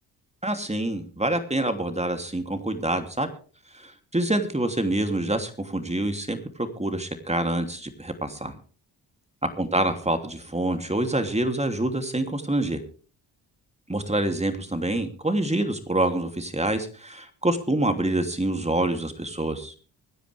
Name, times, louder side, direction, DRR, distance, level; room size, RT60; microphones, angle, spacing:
voice 1, 0.4-3.3 3.7-8.5 9.6-12.8 13.9-19.7, right 1 dB, 15° right, 7 dB, 3.0 m, -26 dB
25.0 x 10.0 x 3.5 m, 0.40 s
supercardioid pair, 45°, 45 cm